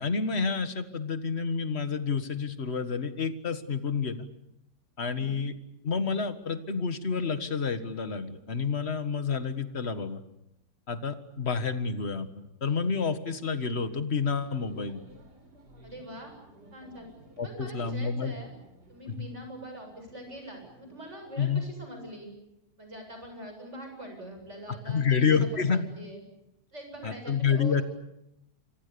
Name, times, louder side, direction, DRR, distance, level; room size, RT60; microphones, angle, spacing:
voice 1, 0.0-4.3 5.0-5.5 5.8-10.2 10.9-12.3 12.6-15.0 17.4-18.3 19.1-19.3 21.4-21.7 24.9-25.9 27.0-27.8, left 5 dB, 40° left, 10 dB, 1.9 m, -29 dB
voice 2, 5.1-5.4 15.8-16.4 16.7-17.1 17.4-18.5 18.9-22.3 22.8-25.3 25.7-26.2 26.7-27.8, right 1 dB, 45° right, 3 dB, 8.2 m, -43 dB
sound 1, 14.2-21.5, right 1 dB, 80° right, 4.8 m, -56 dB
30.0 x 25.5 x 7.0 m, 0.86 s
omnidirectional pair, 1.7 m